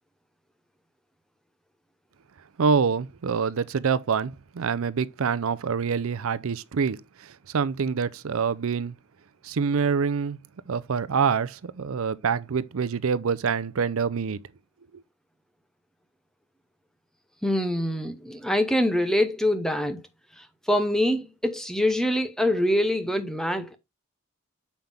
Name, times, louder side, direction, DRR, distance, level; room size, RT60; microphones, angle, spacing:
voice 1, 2.6-8.9 9.4-10.4 10.7-14.4, right 6 dB, 70° right, 0.5 m, -26 dB
voice 2, 17.4-20.0 20.4-23.8, left 1 dB, ahead, 0.7 m, -25 dB
7.1 x 5.7 x 3.4 m
head